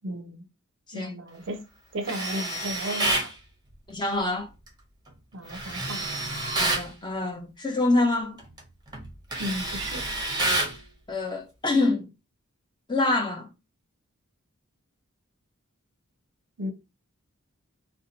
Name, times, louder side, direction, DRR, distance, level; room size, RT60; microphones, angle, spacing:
voice 1, 0.0-0.5 0.9-1.6 1.9-3.3 5.3-6.2 9.4-10.1 16.6-16.7, equal, 55° right, 0.5 m, -34 dB
Tools, 2.0-3.3 5.5-6.9 8.4-8.6 8.9-10.8, right 2 dB, 20° right, 0.7 m, -28 dB
voice 2, 3.9-4.5 6.6-8.4 11.1-12.1 12.9-13.5, left 2 dB, 20° left, 0.7 m, -26 dB
2.7 x 2.1 x 3.9 m
head